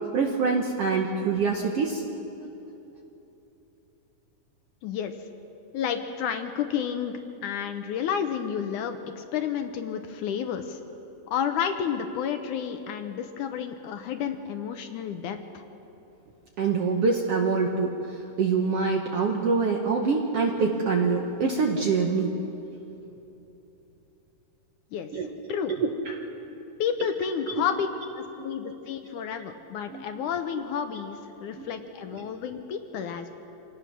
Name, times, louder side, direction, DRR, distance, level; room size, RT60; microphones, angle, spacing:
voice 1, 0.1-2.0 16.6-17.9 18.4-22.4 25.1-25.3 25.7-26.1 27.5-27.6 28.6-28.7 29.9-30.2 31.6-31.7 32.1-32.3, right 4 dB, 65° right, 2 dB, 1.6 m, -25 dB
voice 2, 4.8-5.1 5.7-7.1 7.4-10.8 11.3-15.6 24.9-25.1 25.5-25.7 26.8-27.9 28.2-33.3, left 8 dB, 75° left, 7 dB, 2.1 m, -31 dB
26.0 x 18.0 x 6.1 m, 3.0 s
omnidirectional pair, 4.0 m